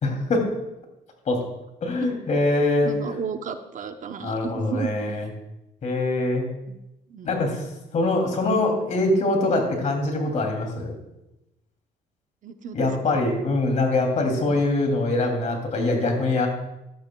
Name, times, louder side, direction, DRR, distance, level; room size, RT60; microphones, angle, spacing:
voice 1, 0.0-0.5 1.3-1.4 1.8-2.9 4.2-5.2 5.8-6.5 7.2-7.6 7.9-10.9 12.7-16.5, left 2 dB, 45° left, 2 dB, 2.9 m, -23 dB
voice 2, 2.8-4.9 6.7-6.8 7.1-7.4 12.4-13.2, right 7 dB, 50° right, 7 dB, 0.9 m, -33 dB
15.0 x 11.5 x 2.3 m, 0.94 s
cardioid pair, 110°, 17 cm